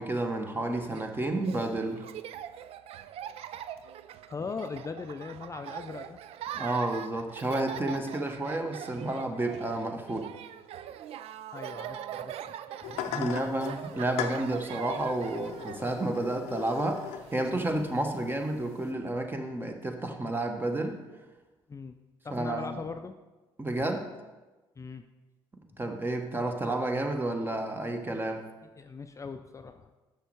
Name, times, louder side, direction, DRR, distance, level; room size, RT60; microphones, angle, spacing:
voice 1, 0.0-2.0 6.5-10.3 13.0-21.0 22.3-22.8 23.6-24.1 25.8-28.4, right 2 dB, 20° right, 5 dB, 1.1 m, -31 dB
Laughter, 0.7-17.5, right 10 dB, 70° right, 0.4 m, -43 dB
voice 2, 4.3-6.2 11.5-12.5 12.9-13.3 17.7-17.9 21.7-21.9 22.2-23.2 24.8-25.0 28.8-29.9, left 4 dB, 30° left, 8 dB, 0.4 m, -40 dB
sound 1, 12.8-18.9, left 10 dB, 90° left, 0.6 m, -40 dB
6.7 x 6.4 x 4.7 m, 1.2 s
supercardioid pair, 70°, 11 cm